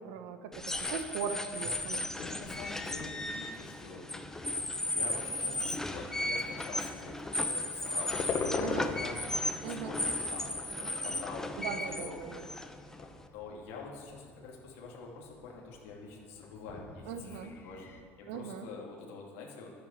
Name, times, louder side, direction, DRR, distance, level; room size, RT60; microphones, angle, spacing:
voice 1, 0.0-2.1 8.6-8.9 9.6-9.9 11.6-12.5 17.1-17.5 18.3-18.7, right 7 dB, 90° right, 9 dB, 1.1 m, -39 dB
sound 1, 0.5-13.2, left 2 dB, 10° left, 0.8 m, -36 dB
voice 2, 2.1-4.5 4.8-10.0 10.3-12.2 13.3-19.7, left 4 dB, 90° left, -3 dB, 2.7 m, -46 dB
sound 2, 8.1-18.0, left 5 dB, 40° left, 1.4 m, -42 dB
11.0 x 10.0 x 7.3 m, 2.1 s
cardioid pair, 125°, 6 cm